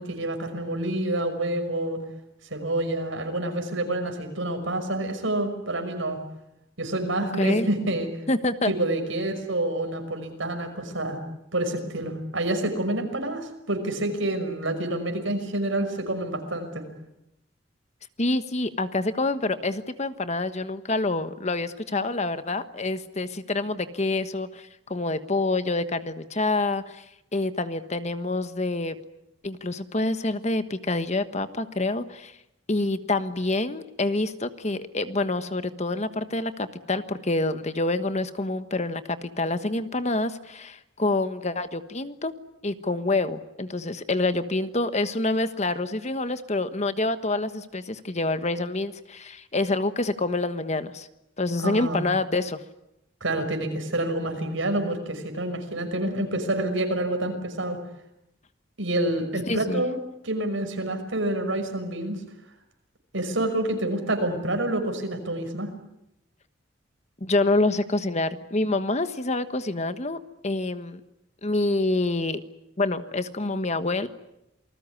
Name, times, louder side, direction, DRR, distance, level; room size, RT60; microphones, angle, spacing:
voice 1, 0.0-2.0 2.5-6.2 6.8-8.1 8.7-11.2 11.5-16.9 51.6-52.0 53.2-57.8 58.8-60.0 60.2-62.2 63.1-65.7, right 1 dB, 85° right, 6 dB, 5.8 m, -28 dB
voice 2, 8.3-8.7 18.2-27.0 27.3-28.9 29.4-32.3 32.7-42.3 42.6-51.1 51.4-52.6 59.5-59.8 67.2-70.2 70.4-71.0 71.4-72.4 72.8-74.1, left 2 dB, 35° left, 11 dB, 1.3 m, -27 dB
28.0 x 20.0 x 9.7 m, 0.86 s
head